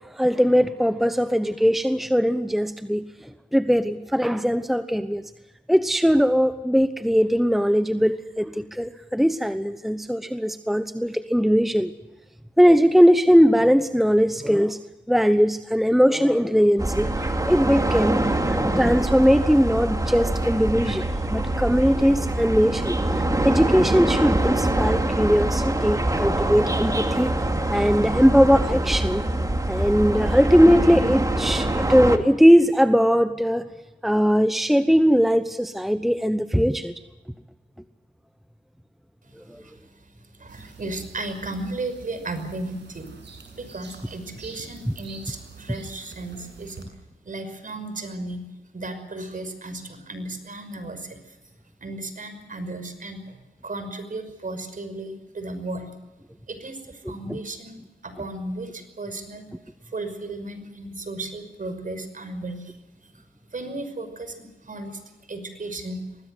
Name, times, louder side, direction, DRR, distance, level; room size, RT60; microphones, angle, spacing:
voice 1, 0.0-5.2 5.7-11.9 12.6-14.8 15.1-27.3 27.7-29.3 29.7-33.7 34.0-36.9 39.5-39.6 44.9-45.0 57.0-57.4, equal, ahead, 11 dB, 1.0 m, -20 dB
sound 1, 16.8-32.2, right 1 dB, 20° right, 2.5 m, -24 dB
voice 2, 40.4-43.1 43.6-46.9 47.3-48.4 48.7-51.2 51.8-53.4 53.6-55.9 56.5-62.7 63.5-65.0 65.3-66.0, right 2 dB, 45° right, 10 dB, 5.7 m, -35 dB
sound 2, 40.5-46.8, right 4 dB, 70° right, 7.8 m, -45 dB
24.0 x 18.5 x 8.0 m, 1.1 s
cardioid pair, 60°, 19 cm